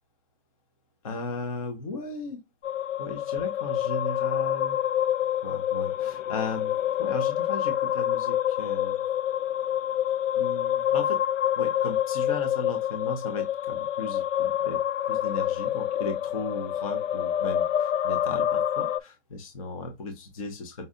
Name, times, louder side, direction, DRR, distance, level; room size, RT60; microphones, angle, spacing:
voice 1, 1.0-2.4 3.0-4.8 5.3-6.7 7.0-9.0 10.3-11.2 11.6-14.8 15.1-20.9, left 3 dB, 30° left, 0.8 m, -36 dB
sound 1, 2.6-19.0, left 10 dB, 85° left, 0.5 m, -27 dB
5.4 x 2.3 x 3.7 m
hypercardioid pair, 170°, 36 cm